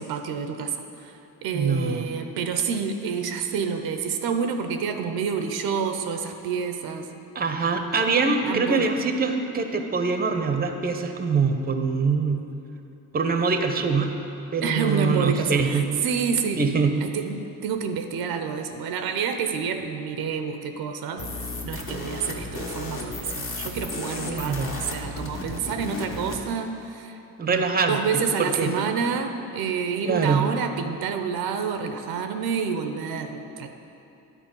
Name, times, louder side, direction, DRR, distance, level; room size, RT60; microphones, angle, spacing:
voice 1, 0.0-7.1 8.5-8.9 14.6-16.6 17.0-21.3 21.6-27.2 27.5-33.7, right 6 dB, 70° right, 6 dB, 0.7 m, -28 dB
voice 2, 1.5-2.1 7.3-12.4 13.1-14.1 14.5-15.9 16.6-17.0 24.3-24.7 27.4-28.7 30.0-30.5, right 4 dB, 25° right, 6 dB, 0.7 m, -24 dB
sound 1, 21.2-26.4, left 2 dB, 35° left, 1.3 m, -33 dB
10.0 x 4.1 x 5.4 m, 2.9 s
supercardioid pair, 65°, 38 cm